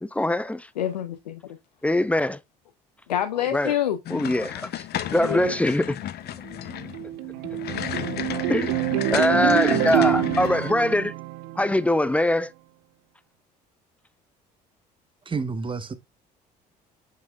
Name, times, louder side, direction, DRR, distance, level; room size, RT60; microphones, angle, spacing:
voice 1, 0.0-0.7 1.8-2.4 3.5-3.7 4.1-4.8 5.1-6.0 8.5-8.9 9.1-11.1 11.6-12.5, left 1 dB, 5° left, 0.5 m, -23 dB
voice 2, 0.8-1.4 3.1-4.0 4.9-5.6, left 10 dB, 90° left, 0.6 m, -27 dB
sound 1, 4.1-10.7, left 12 dB, 55° left, 0.7 m, -33 dB
sound 2, 6.5-12.1, right 15 dB, 75° right, 0.5 m, -26 dB
voice 3, 15.2-15.9, right 4 dB, 25° right, 1.2 m, -29 dB
7.7 x 5.6 x 2.2 m
hypercardioid pair, 60°, 20 cm